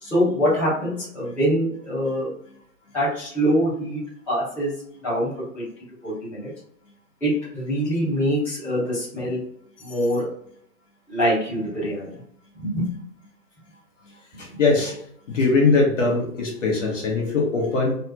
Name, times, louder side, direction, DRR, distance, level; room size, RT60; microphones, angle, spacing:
voice 1, 0.0-2.3 2.9-4.0 4.3-4.7 5.0-5.7 6.0-6.5 7.2-9.4 9.8-10.2 11.1-12.1 12.6-12.8, equal, 5° left, -15 dB, 1.0 m, -24 dB
voice 2, 14.4-15.0 15.3-18.0, left 3 dB, 50° left, -1 dB, 1.3 m, -21 dB
3.4 x 2.9 x 2.3 m, 0.66 s
hypercardioid pair, 160°, 46 cm